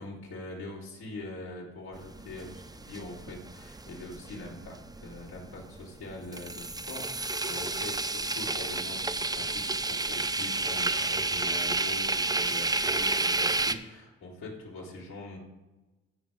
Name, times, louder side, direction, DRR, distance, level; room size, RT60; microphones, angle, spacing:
voice 1, 0.0-4.7 5.0-15.4, left 2 dB, 85° left, -5 dB, 3.7 m, -43 dB
sound 1, 1.9-13.7, right 2 dB, 10° right, 0.7 m, -31 dB
15.5 x 5.5 x 3.8 m, 1.1 s
supercardioid pair, 60°, 34 cm